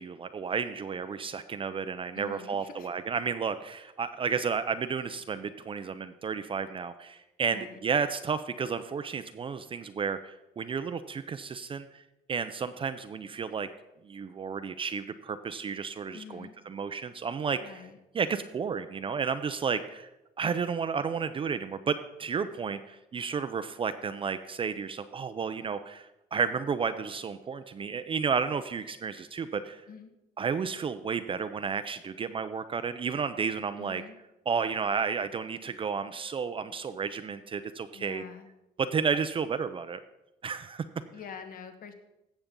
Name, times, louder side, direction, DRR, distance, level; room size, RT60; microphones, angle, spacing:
voice 1, 0.0-12.0 12.3-13.7 14.0-17.9 18.1-20.1 20.4-29.8 30.4-34.0 34.5-38.2 38.8-40.0 40.4-40.8, right 6 dB, 30° right, 10 dB, 0.5 m, -32 dB
voice 2, 2.1-2.9 7.5-7.8 16.1-16.5 17.6-18.0 29.9-30.1 33.8-34.1 37.9-38.5 41.1-41.9, left 6 dB, 60° left, 7 dB, 1.3 m, -45 dB
16.0 x 6.9 x 3.8 m, 0.94 s
cardioid pair, 110°, 17 cm